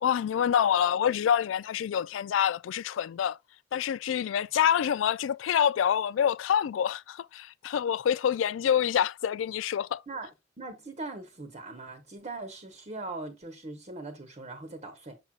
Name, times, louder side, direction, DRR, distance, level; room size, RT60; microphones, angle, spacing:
voice 1, 0.0-3.4 3.7-10.0, left 9 dB, 90° left, 0.3 m, -26 dB
voice 2, 10.6-15.2, right 2 dB, 35° right, 1.0 m, -40 dB
6.6 x 6.1 x 2.4 m
head